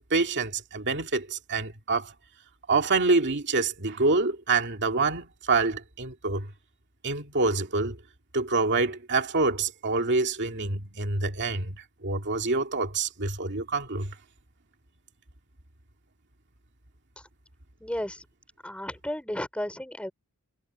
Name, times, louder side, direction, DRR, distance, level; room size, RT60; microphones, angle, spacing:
voice 1, 0.1-2.1 2.7-6.5 7.0-8.0 8.3-11.7 12.0-14.1, right 3 dB, 55° right, 2.4 m, -26 dB
voice 2, 17.8-18.3 18.6-20.1, left 1 dB, 5° left, 5.6 m, -33 dB
head